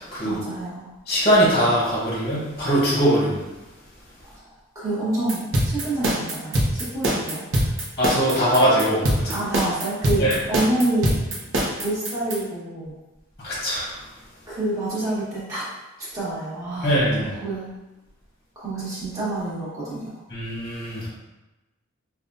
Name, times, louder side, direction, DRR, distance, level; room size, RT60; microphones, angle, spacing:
voice 1, 0.2-0.9 4.2-4.5 4.7-7.7 9.3-11.2 11.8-12.9 14.5-15.7 16.0-17.7 18.5-20.1, right 2 dB, 15° right, -10 dB, 1.4 m, -28 dB
voice 2, 1.1-3.4 8.0-9.3 10.2-10.3 13.4-13.9 16.8-17.3 20.3-21.1, equal, 30° left, -6 dB, 0.9 m, -21 dB
sound 1, 5.3-12.4, right 1 dB, 65° right, 0.8 m, -23 dB
5.4 x 2.4 x 2.6 m, 1.1 s
head